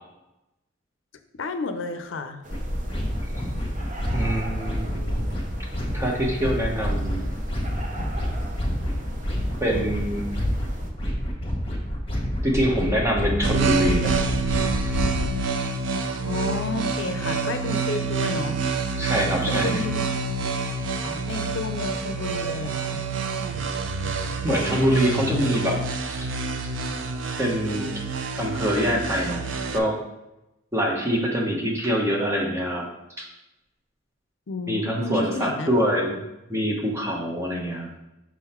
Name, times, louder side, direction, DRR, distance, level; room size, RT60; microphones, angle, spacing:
voice 1, 1.4-2.4 16.2-18.6 19.5-20.0 21.0-23.0 34.5-35.7 37.5-37.6, left 3 dB, 70° left, 8 dB, 0.5 m, -31 dB
sound 1, 2.4-10.9, right 2 dB, 45° right, 0.8 m, -41 dB
sound 2, 2.5-15.3, equal, 30° left, 1.5 m, -28 dB
voice 2, 4.1-5.2 5.9-7.2 9.6-10.3 12.4-14.3 18.9-19.8 24.4-25.8 26.1-26.3 27.4-27.9 28.3-29.5 29.7-30.0 30.7-32.9 33.2-33.3 34.7-36.2 36.5-37.9, equal, 15° right, -1 dB, 1.0 m, -25 dB
sound 3, 13.4-29.8, right 4 dB, 70° right, 0.5 m, -27 dB
6.2 x 3.9 x 4.3 m, 0.92 s
head